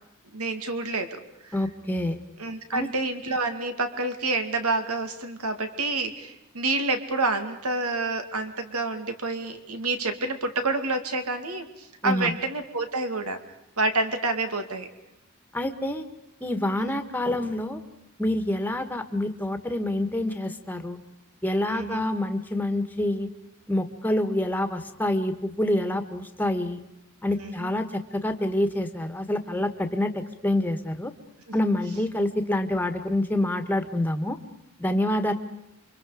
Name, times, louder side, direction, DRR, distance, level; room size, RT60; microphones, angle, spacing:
voice 1, 0.3-1.2 1.5-1.6 2.4-13.4 13.8-14.9 16.8-17.0 21.7-22.1 27.4-27.7, right 3 dB, 85° right, 7 dB, 2.4 m, -28 dB
voice 2, 1.5-2.2 2.7-2.9 12.0-12.3 15.5-16.1 16.4-17.8 18.2-21.0 21.4-23.3 23.7-26.8 27.2-31.1 31.5-34.4 34.8-35.3, left 1 dB, 10° left, 7 dB, 1.5 m, -27 dB
28.5 x 25.0 x 5.1 m, 0.85 s
head